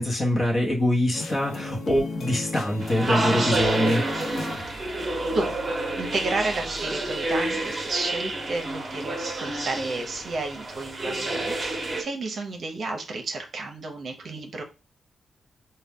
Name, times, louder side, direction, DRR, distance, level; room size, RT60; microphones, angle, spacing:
voice 1, 0.0-4.0, left 1 dB, 30° left, -2 dB, 0.9 m, -24 dB
sound 1, 1.1-7.9, left 3 dB, 70° left, 0.6 m, -37 dB
sound 2, 2.8-12.0, right 2 dB, 25° right, 0.9 m, -29 dB
voice 2, 5.3-14.6, right 3 dB, 55° right, 3 dB, 0.7 m, -32 dB
4.2 x 2.2 x 3.6 m, 0.29 s
wide cardioid pair, 140°, 0 cm